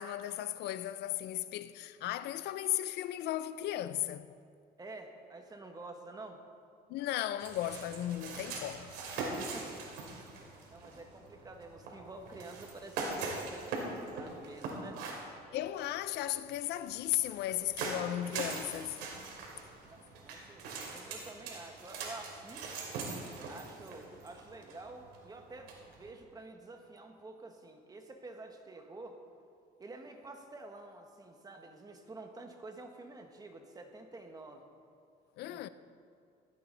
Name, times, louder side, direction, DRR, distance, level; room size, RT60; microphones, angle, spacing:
voice 1, 0.0-4.3 6.9-8.9 15.5-19.0 35.4-35.7, left 13 dB, 80° left, 0.6 m, -36 dB
voice 2, 4.8-6.4 9.2-10.3 10.7-15.0 19.8-22.7 23.5-29.2 29.8-34.7 35.4-35.7, right 2 dB, 20° right, 1.5 m, -49 dB
sound 1, 7.4-26.1, right 3 dB, 90° right, 2.8 m, -42 dB
15.5 x 13.5 x 4.0 m
cardioid pair, 110°, 17 cm